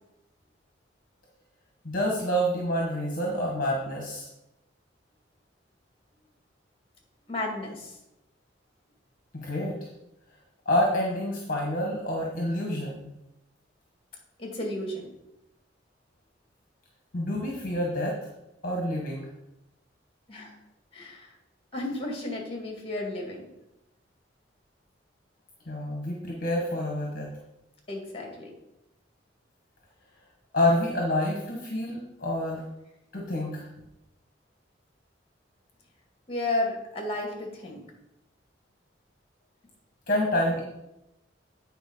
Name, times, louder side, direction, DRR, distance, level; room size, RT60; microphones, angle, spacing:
voice 1, 1.8-4.3 9.3-9.8 10.6-13.1 17.1-18.2 18.6-19.3 25.7-27.3 30.5-32.6 33.1-33.7 40.1-40.6, left 1 dB, 50° left, -1 dB, 1.5 m, -28 dB
voice 2, 7.3-8.0 14.4-15.1 20.3-20.6 20.9-21.3 21.7-23.4 27.9-28.5 36.3-37.8, left 2 dB, 30° left, 1 dB, 2.2 m, -33 dB
9.2 x 4.4 x 5.6 m, 0.90 s
head